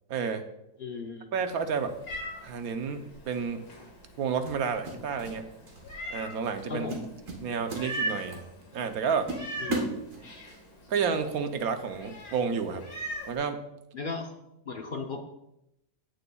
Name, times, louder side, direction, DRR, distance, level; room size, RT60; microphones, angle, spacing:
voice 1, 0.1-0.4 1.3-1.9 2.4-3.6 4.2-5.5 6.1-6.9 7.4-8.4 8.7-9.3 10.9-12.8 13.3-13.6, right 6 dB, 85° right, 8 dB, 1.2 m, -30 dB
voice 2, 0.8-1.3 6.7-7.0 9.6-9.9 13.9-14.3 14.6-15.2, left 4 dB, 45° left, 3 dB, 0.8 m, -36 dB
Meow, 1.3-13.4, right 1 dB, 80° left, 2.2 m, -41 dB
sound 1, 3.1-3.4 4.5-5.4 5.7-6.0 6.4-6.6 6.9-8.4 8.8-8.9 9.3-10.6, right 2 dB, 65° right, 1.7 m, -35 dB
15.5 x 6.8 x 2.3 m, 0.86 s
omnidirectional pair, 1.5 m